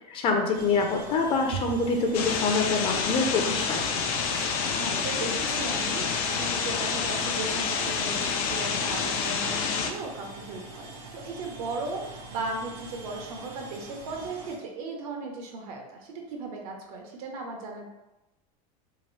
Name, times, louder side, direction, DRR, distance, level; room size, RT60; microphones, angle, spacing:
voice 1, 0.1-3.8, left 4 dB, 30° left, 3 dB, 0.4 m, -25 dB
sound 1, 0.5-14.5, right 2 dB, 75° right, 1.1 m, -44 dB
Bowed string instrument, 1.5-4.1, right 9 dB, 45° right, 0.4 m, -42 dB
sound 2, 2.1-9.9, left 5 dB, 80° left, 0.5 m, -28 dB
voice 2, 4.6-6.1 6.3-17.9, right 3 dB, 90° right, 1 dB, 0.8 m, -37 dB
2.9 x 2.9 x 3.1 m, 0.97 s
supercardioid pair, 155°, 18 cm